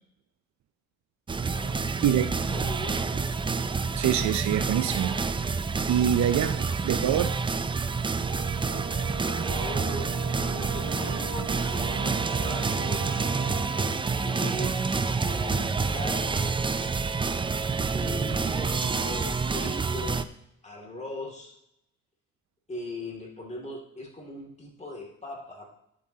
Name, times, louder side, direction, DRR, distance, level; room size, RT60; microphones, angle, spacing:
sound 1, 1.3-20.2, right 4 dB, 15° right, 0.4 m, -28 dB
voice 1, 1.5-3.2 9.1-13.1 14.2-16.5 17.9-20.3 20.6-21.6 22.7-25.7, left 1 dB, 20° left, 0 dB, 2.4 m, -40 dB
voice 2, 4.0-5.2 5.5-5.6 5.9-7.4, right 10 dB, 65° right, 12 dB, 0.5 m, -25 dB
Brass instrument, 8.2-14.1, right 5 dB, 45° right, 1.3 m, -39 dB
9.9 x 7.6 x 2.8 m, 0.80 s
cardioid pair, 90°, 31 cm